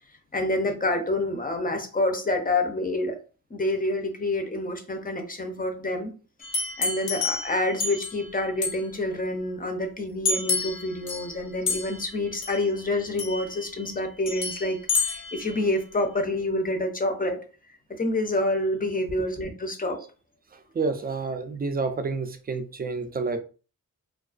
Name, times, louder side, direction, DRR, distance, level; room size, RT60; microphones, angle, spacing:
voice 1, 0.3-3.2 3.5-6.1 6.8-17.4 17.9-20.0, left 2 dB, 25° left, 0.5 m, -27 dB
sound 1, 6.4-8.3 8.6-8.8 10.2-11.4 11.7-12.1 12.4-12.6 13.2-13.6 14.3-15.6, left 4 dB, 80° left, 0.7 m, -29 dB
voice 2, 20.5-23.4, right 4 dB, 30° right, 0.4 m, -29 dB
2.3 x 2.2 x 2.4 m
wide cardioid pair, 80°, 35 cm